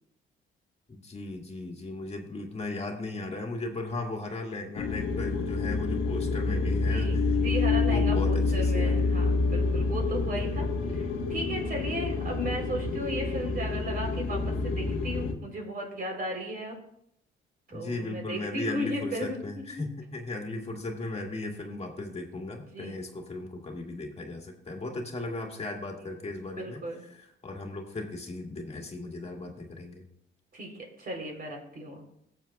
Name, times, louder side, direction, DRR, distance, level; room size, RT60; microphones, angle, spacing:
voice 1, 0.9-7.2 7.9-9.0 17.7-26.8 27.1-30.0, left 2 dB, 30° left, 2 dB, 1.9 m, -36 dB
sound 1, 4.7-15.3, left 3 dB, 80° left, 1.3 m, -27 dB
voice 2, 6.9-10.7 10.9-16.8 17.7-19.8 22.7-23.0 26.6-27.0 30.5-30.7 31.0-32.0, equal, 50° right, 1 dB, 3.5 m, -35 dB
19.5 x 7.3 x 2.3 m, 0.75 s
cardioid pair, 90°, 20 cm